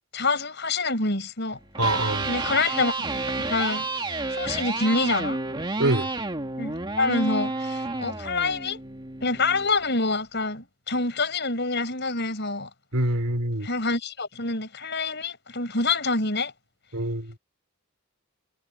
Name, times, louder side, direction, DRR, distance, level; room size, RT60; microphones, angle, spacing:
voice 1, 0.1-1.6 2.3-2.9 3.5-3.9 4.3-5.4 6.6-8.8 9.2-12.7 13.6-16.5, left 3 dB, 50° left, 6.2 m, -26 dB
Electric guitar, 1.6-9.7, right 3 dB, 20° right, 2.2 m, -30 dB
voice 2, 1.8-2.3 5.8-6.1 12.9-13.7 16.9-17.3, right 1 dB, 80° right, 3.8 m, -25 dB
head